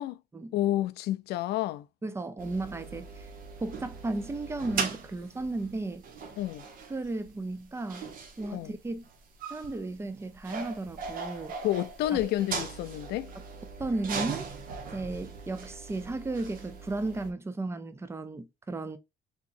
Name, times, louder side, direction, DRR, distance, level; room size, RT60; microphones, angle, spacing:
voice 1, 0.5-1.9 6.4-6.6 8.5-8.7 11.6-13.3, left 14 dB, 75° left, 0.4 m, -29 dB
voice 2, 2.0-3.3 3.6-6.0 6.9-8.1 8.4-9.0 9.5-11.5 12.1-12.2 13.8-14.5 14.9-19.0, right 2 dB, 15° right, 0.5 m, -34 dB
sound 1, 2.4-17.3, right 5 dB, 55° right, 0.9 m, -39 dB
3.5 x 3.0 x 2.5 m
cardioid pair, 110°, 17 cm